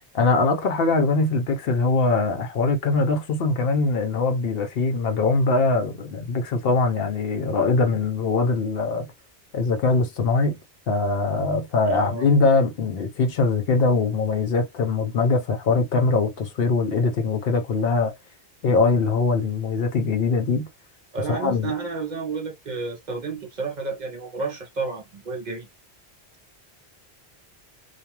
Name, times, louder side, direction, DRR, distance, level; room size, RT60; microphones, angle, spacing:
voice 1, 0.1-9.1 9.5-10.6 10.9-18.1 18.6-20.7 21.3-21.7, left 3 dB, 65° left, 0.8 m, -22 dB
voice 2, 11.9-12.3 21.1-25.7, right 4 dB, 50° right, 0.7 m, -31 dB
2.3 x 2.3 x 2.8 m
omnidirectional pair, 1.1 m